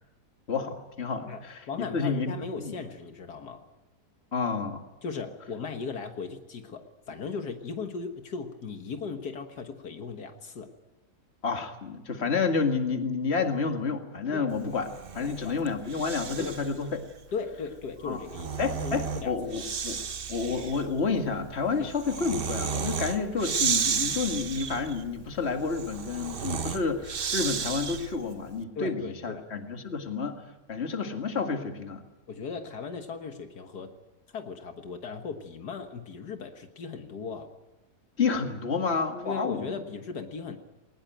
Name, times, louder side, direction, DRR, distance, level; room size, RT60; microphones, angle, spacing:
voice 1, 0.5-1.6 1.9-2.7 4.3-4.8 11.4-14.9 15.1-17.0 18.0-18.2 18.6-20.0 20.3-30.4 30.7-32.0 38.2-39.7, left 4 dB, 40° left, 6 dB, 2.2 m, -30 dB
voice 2, 1.3-3.6 5.0-10.7 14.3-14.5 15.2-15.6 16.4-16.6 17.3-19.3 21.8-21.9 28.8-29.4 32.3-33.9 34.3-37.5 39.3-40.6, left 5 dB, 75° left, 7 dB, 2.0 m, -37 dB
Breathing, 14.8-16.8 18.0-28.3, right 6 dB, 40° right, 1.0 m, -33 dB
21.0 x 19.5 x 9.1 m, 1.0 s
omnidirectional pair, 1.7 m